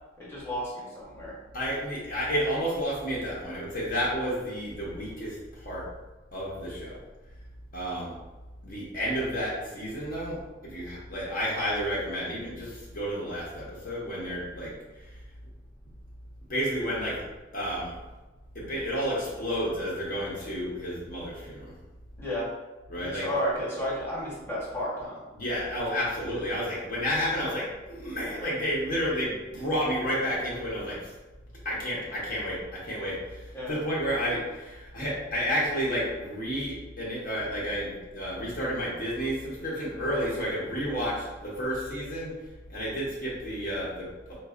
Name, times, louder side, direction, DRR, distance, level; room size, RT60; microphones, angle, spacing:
voice 1, 0.2-1.4 22.2-22.5 23.0-25.2 33.5-33.7, equal, 15° left, -7 dB, 0.9 m, -32 dB
voice 2, 1.5-5.8 6.3-7.0 7.7-8.1 8.6-14.7 16.5-17.2 17.5-17.9 18.5-21.7 22.9-23.3 25.3-31.1 31.6-42.4 42.7-44.4, equal, 45° left, -6 dB, 0.7 m, -31 dB
4.1 x 2.3 x 2.4 m, 1.1 s
head